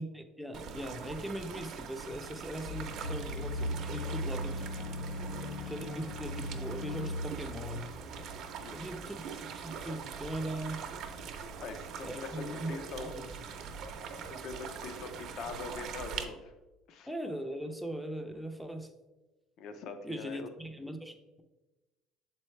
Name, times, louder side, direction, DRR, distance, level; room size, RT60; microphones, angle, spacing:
voice 1, 0.0-4.7 5.7-7.9 8.7-10.8 12.0-12.7 13.1-13.2 17.1-18.9 20.0-21.4, right 1 dB, ahead, 5 dB, 0.5 m, -40 dB
sound 1, 0.5-16.2, right 6 dB, 45° right, 0.6 m, -43 dB
sound 2, 2.6-8.3, left 1 dB, 90° left, 1.4 m, -38 dB
voice 2, 5.1-5.5 8.6-9.0 11.6-13.1 14.2-16.5 16.9-17.1 19.6-20.5, left 4 dB, 50° left, 8 dB, 0.6 m, -43 dB
6.9 x 4.4 x 3.2 m, 1.1 s
cardioid pair, 155°, 0 cm